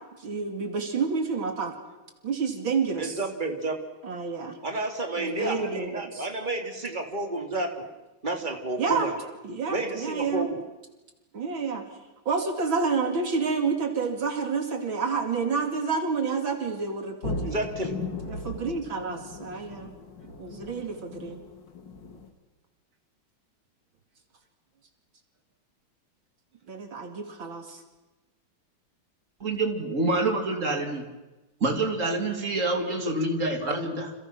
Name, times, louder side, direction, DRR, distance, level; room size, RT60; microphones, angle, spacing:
voice 1, 0.2-1.7 2.2-3.2 4.0-4.6 5.2-6.3 8.8-9.1 9.4-10.5 11.3-11.8 12.2-17.6 18.2-19.9 20.4-21.4 26.7-27.8, right 5 dB, 75° right, 4 dB, 3.4 m, -29 dB
voice 2, 3.0-3.8 4.6-7.9 8.2-9.2 9.7-10.6 17.4-18.0, right 2 dB, 20° right, 4 dB, 2.9 m, -31 dB
sound 1, 17.2-22.3, left 3 dB, 60° left, 2.9 m, -37 dB
voice 3, 29.4-31.1 31.6-34.1, right 2 dB, 35° right, 3 dB, 3.5 m, -27 dB
29.5 x 28.0 x 6.2 m, 1.1 s
omnidirectional pair, 2.2 m